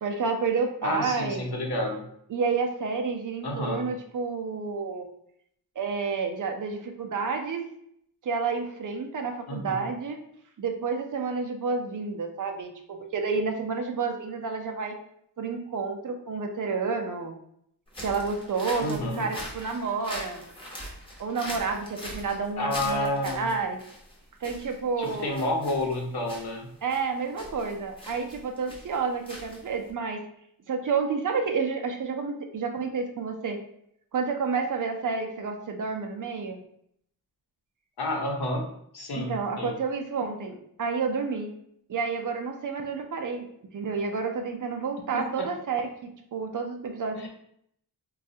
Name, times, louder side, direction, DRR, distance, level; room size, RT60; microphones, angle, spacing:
voice 1, 0.0-1.4 2.3-5.1 5.8-7.6 8.2-10.2 10.6-15.0 15.4-17.3 18.0-20.4 21.2-23.8 24.4-25.5 26.8-30.2 30.7-33.6 34.1-36.6 39.1-41.5 41.9-43.5 43.7-47.3, right 5 dB, 55° right, 4 dB, 0.5 m, -30 dB
voice 2, 0.8-2.0 3.4-3.9 9.5-9.8 18.8-19.3 22.6-23.5 25.0-26.7 38.0-38.6 38.9-39.7 45.1-45.5 47.1-47.3, left 1 dB, 75° left, 1 dB, 0.8 m, -30 dB
sound 1, 17.9-29.9, equal, 15° left, 0.7 m, -42 dB
4.0 x 2.3 x 2.7 m, 0.72 s
wide cardioid pair, 140°, 39 cm